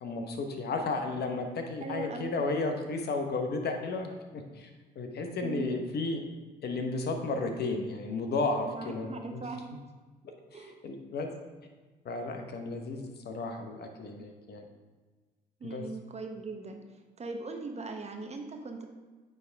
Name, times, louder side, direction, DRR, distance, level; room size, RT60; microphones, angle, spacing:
voice 1, 0.0-4.7 5.0-6.2 6.6-9.4 10.5-11.3 12.0-14.6 15.6-15.9, left 3 dB, 50° left, 5 dB, 0.9 m, -33 dB
voice 2, 1.8-2.3 5.4-5.8 8.6-9.6 10.5-10.8 15.6-16.8 17.2-18.9, right 4 dB, 30° right, 4 dB, 0.9 m, -39 dB
9.0 x 3.5 x 3.4 m, 1.3 s
hypercardioid pair, 55°, 21 cm